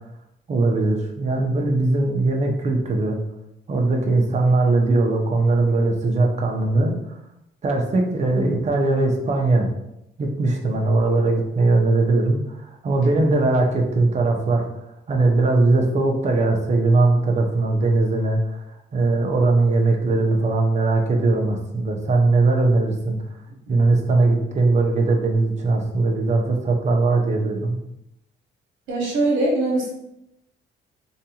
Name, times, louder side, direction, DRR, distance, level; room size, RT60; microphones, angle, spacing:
voice 1, 0.5-3.2 3.7-7.2 7.6-9.7 10.2-14.7 15.1-18.6 18.9-23.2 23.7-27.8, right 2 dB, 35° right, 1 dB, 0.6 m, -20 dB
voice 2, 28.9-29.9, right 2 dB, 80° right, -2 dB, 0.9 m, -22 dB
2.6 x 2.2 x 2.8 m, 0.85 s
cardioid pair, 90°, 20 cm